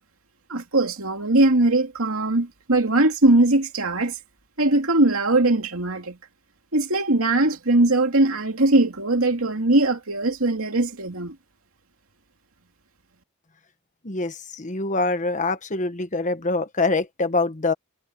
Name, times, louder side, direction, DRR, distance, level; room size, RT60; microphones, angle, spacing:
voice 1, 0.5-4.1 4.6-6.2 6.7-11.3, right 2 dB, 70° right, 2.7 m, -20 dB
voice 2, 14.0-17.7, left 3 dB, 35° left, 1.3 m, -24 dB
head